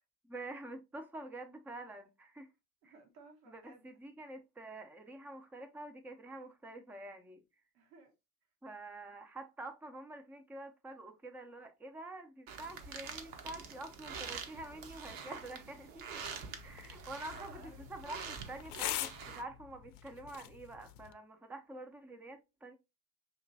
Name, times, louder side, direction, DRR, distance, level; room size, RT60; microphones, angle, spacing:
voice 1, 0.3-2.5 2.8-2.9 3.5-7.4 8.6-16.2 16.6-22.8, right 2 dB, 5° right, 0.6 m, -47 dB
voice 2, 2.8-3.9 7.7-8.1 16.3-17.9, right 3 dB, 65° right, 1.4 m, -59 dB
sound 1, 12.5-19.4, right 6 dB, 50° right, 1.1 m, -46 dB
sound 2, 16.1-21.1, left 14 dB, 70° left, 0.6 m, -44 dB
5.8 x 2.9 x 2.6 m
hypercardioid pair, 75°, 47 cm